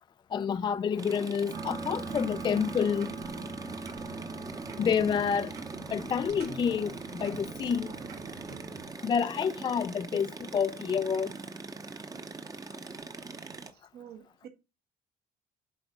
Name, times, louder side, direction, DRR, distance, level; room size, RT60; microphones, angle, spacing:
voice 1, 0.3-3.1 4.8-5.5 5.9-7.9 9.0-11.3, left 7 dB, 30° left, 0.3 m, -29 dB
sound 1, 1.0-13.7, right 3 dB, 20° right, 0.8 m, -42 dB
sound 2, 1.5-8.9, right 3 dB, 90° right, 2.2 m, -42 dB
voice 2, 13.7-14.5, right 9 dB, 70° right, 1.6 m, -49 dB
8.1 x 3.5 x 5.9 m
cardioid pair, 110°, 17 cm